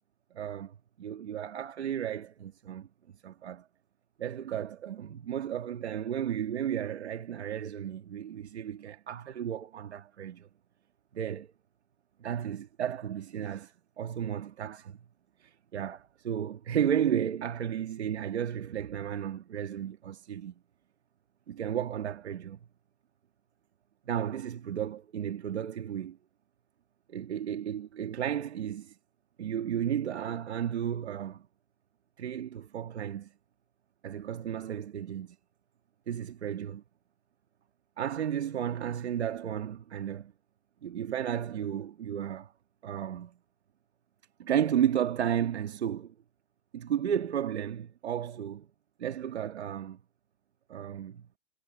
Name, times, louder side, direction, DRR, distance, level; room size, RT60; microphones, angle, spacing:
voice 1, 0.3-2.9 3.2-3.6 4.2-10.5 11.1-11.5 12.2-15.0 15.4-20.5 21.5-22.6 24.1-26.2 27.1-29.0 29.4-31.4 32.2-33.3 34.0-35.4 36.1-36.8 38.0-40.3 40.8-42.5 42.8-43.4 44.4-46.1 46.7-48.7 49.0-50.0 50.7-51.3, right 9 dB, 70° right, 2.0 m, -33 dB
hypercardioid pair, 150°, 35 cm